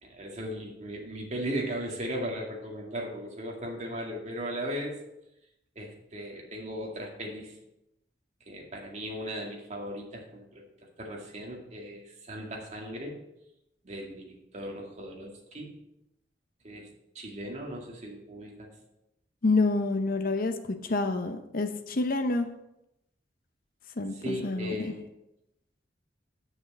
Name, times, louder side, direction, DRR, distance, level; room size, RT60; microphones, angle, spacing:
voice 1, 0.0-5.0 5.8-7.6 8.5-10.7 11.0-13.2 13.8-15.7 16.6-16.9 17.1-18.7 24.1-25.1, equal, 40° right, 0 dB, 2.0 m, -37 dB
voice 2, 19.4-22.5 24.0-24.9, left 3 dB, 50° left, 7 dB, 0.7 m, -28 dB
7.5 x 6.5 x 6.6 m, 0.86 s
head